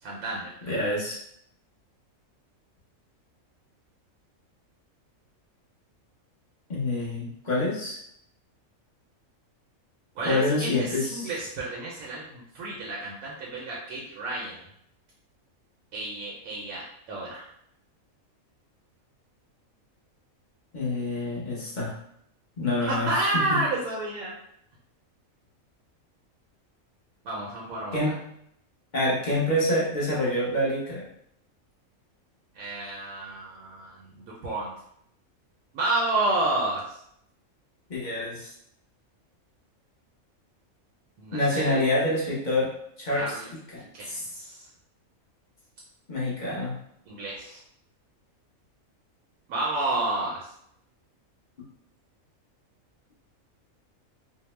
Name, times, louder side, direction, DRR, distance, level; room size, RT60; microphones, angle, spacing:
voice 1, 0.0-0.7 10.2-14.6 15.9-16.8 17.1-17.5 22.8-24.3 27.2-28.1 32.5-34.7 35.7-36.8 41.2-41.9 43.2-43.5 43.8-44.7 47.1-47.6 49.5-50.5, right 2 dB, 80° right, -4 dB, 1.1 m, -30 dB
voice 2, 0.7-1.2 6.7-8.0 10.3-11.3 20.7-21.9 22.6-23.6 27.9-28.1 28.9-31.1 37.9-38.5 41.3-42.7 43.0-44.3 46.1-46.7, left 1 dB, 40° left, -6 dB, 0.8 m, -27 dB
2.8 x 2.0 x 3.0 m, 0.72 s
omnidirectional pair, 1.4 m